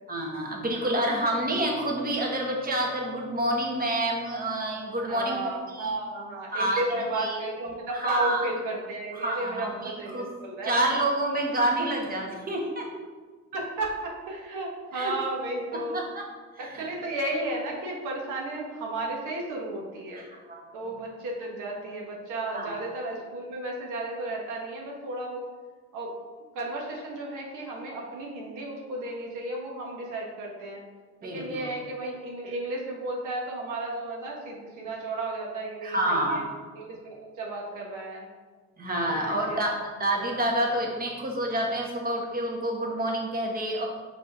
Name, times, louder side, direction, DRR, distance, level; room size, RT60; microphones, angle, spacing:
voice 1, 0.1-5.9 6.5-7.4 8.0-8.4 9.2-10.3 10.6-12.9 14.9-15.1 15.7-16.2 16.7-16.8 20.1-20.6 22.5-22.7 31.2-31.7 35.8-36.4 38.8-43.9, right 1 dB, 30° right, -1 dB, 1.5 m, -28 dB
voice 2, 5.0-10.8 13.5-16.0 16.6-20.2 20.7-25.4 25.9-26.1 26.5-30.8 31.2-36.4 36.7-38.3 39.1-39.6, right 2 dB, 90° right, -1 dB, 1.4 m, -33 dB
5.4 x 4.3 x 4.9 m, 1.5 s
cardioid pair, 90°, 30 cm